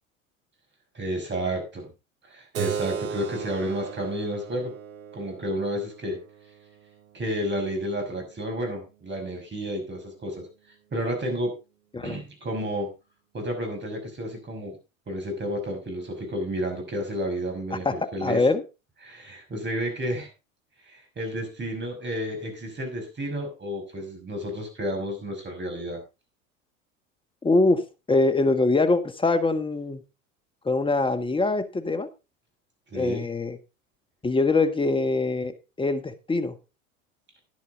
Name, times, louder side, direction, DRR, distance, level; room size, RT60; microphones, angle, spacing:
voice 1, 0.9-1.9 2.3-4.7 5.1-6.2 7.1-10.5 10.9-11.5 12.0-12.9 13.3-14.8 15.1-18.4 19.0-20.3 20.8-26.0 32.9-33.3, equal, 25° right, 4 dB, 5.8 m, -31 dB
Keyboard (musical), 2.5-7.7, right 8 dB, 85° right, 0.9 m, -36 dB
voice 2, 18.2-18.6 27.4-27.8 28.1-30.0 30.6-32.1 32.9-33.6 34.2-36.5, left 3 dB, 15° left, 8 dB, 1.5 m, -23 dB
11.0 x 10.5 x 3.8 m, 0.29 s
hypercardioid pair, 80°, 40 cm